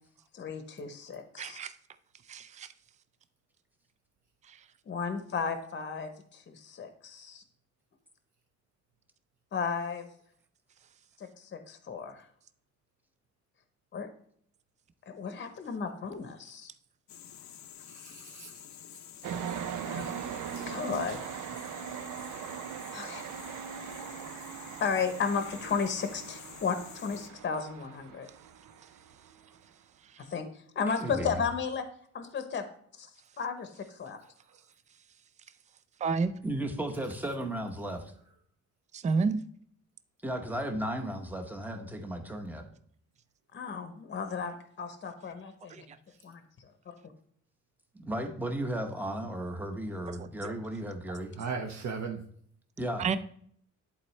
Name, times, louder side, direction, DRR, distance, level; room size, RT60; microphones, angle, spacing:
voice 1, 0.3-1.6 4.9-7.4 9.5-10.1 11.2-12.2 13.9-14.1 15.1-16.7 19.9-20.4 20.6-21.2 22.9-23.2 24.6-28.3 30.3-30.5 30.7-31.8 32.1-32.6 33.0-33.1 33.4-34.2 43.5-45.9 46.2-46.7, left 5 dB, 35° left, 0.8 m, -34 dB
voice 2, 1.4-1.7 2.3-2.7 4.5-4.6 36.0-36.3 38.9-39.4 45.7-45.8 50.4-50.5 53.0-53.2, right 4 dB, 25° right, 0.3 m, -29 dB
sound 1, 17.1-27.3, left 10 dB, 65° left, 0.6 m, -49 dB
voice 3, 17.9-18.5 51.4-52.2, right 5 dB, 65° right, 1.0 m, -36 dB
sound 2, 19.2-29.6, right 9 dB, 85° right, 0.6 m, -40 dB
voice 4, 31.0-31.4 36.4-38.1 40.2-42.6 47.9-51.3 52.8-53.0, right 1 dB, 5° right, 0.8 m, -35 dB
11.0 x 4.2 x 3.2 m
wide cardioid pair, 165°, 30 cm